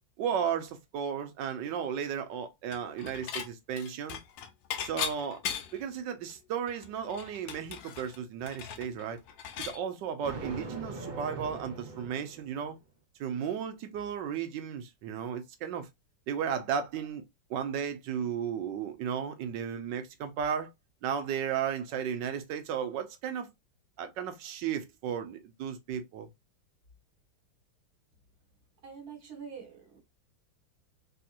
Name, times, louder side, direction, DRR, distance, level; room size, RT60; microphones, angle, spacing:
voice 1, 0.2-4.2 4.8-5.4 5.7-9.2 9.6-12.8 13.2-15.9 16.3-17.2 17.5-20.7 21.0-23.5 24.0-26.3, right 8 dB, 70° right, 1.2 m, -34 dB
Dishes pots and pans / Chink clink, 2.7-3.5 3.8-5.9 6.3-6.4 6.7-9.8, left 8 dB, 75° left, 1.3 m, -38 dB
Thunder, 10.2-12.8, right 3 dB, 85° right, 0.4 m, -41 dB
voice 2, 28.8-30.0, right 6 dB, 50° right, 1.6 m, -45 dB
3.5 x 2.8 x 2.4 m
omnidirectional pair, 2.2 m